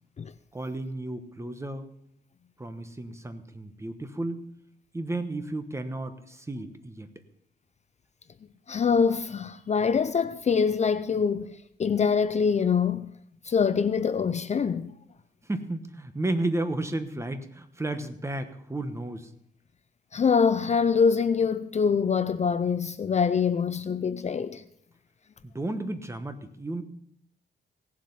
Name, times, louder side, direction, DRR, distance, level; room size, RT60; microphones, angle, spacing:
voice 1, 0.5-1.9 2.6-4.4 4.9-7.1 15.4-19.3 25.4-26.8, right 2 dB, 15° right, 1.1 m, -33 dB
voice 2, 8.7-13.1 13.4-14.9 20.1-24.6, left 6 dB, 35° left, 0.5 m, -24 dB
17.0 x 7.6 x 5.5 m
cardioid pair, 120°, 19 cm